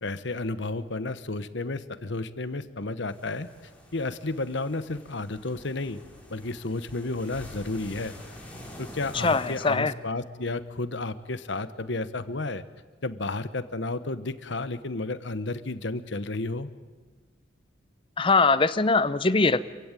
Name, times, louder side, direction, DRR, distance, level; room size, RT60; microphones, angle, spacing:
voice 1, 0.0-3.5 3.9-6.0 6.3-8.2 8.8-12.6 13.0-16.7, left 2 dB, 65° left, 13 dB, 1.1 m, -32 dB
sound 1, 3.1-9.7, equal, 5° left, 3.8 m, -46 dB
voice 2, 9.2-9.9 18.2-19.6, left 3 dB, 25° left, 14 dB, 0.7 m, -22 dB
27.0 x 15.5 x 9.1 m, 1.4 s
head